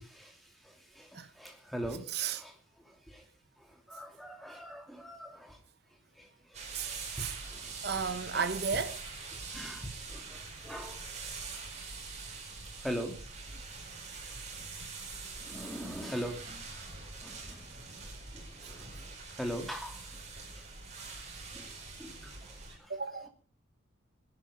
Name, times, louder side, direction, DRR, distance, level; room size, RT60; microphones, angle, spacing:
voice 1, 0.0-2.5 2.8-3.2 3.6-5.6 6.2-7.7 8.1-8.5 9.5-11.0 12.8-13.2 15.4-16.6 17.2-17.7 18.7-18.9 19.3-20.0 20.5-20.6 21.5-21.7 22.0-22.9, equal, ahead, 2.7 m, -42 dB
voice 2, 2.1-2.4 6.7-7.4 7.8-9.0 22.9-23.3, right 6 dB, 50° right, 1.2 m, -34 dB
sound 1, 6.5-22.8, right 4 dB, 35° right, 5.1 m, -44 dB
19.5 x 11.5 x 5.1 m
head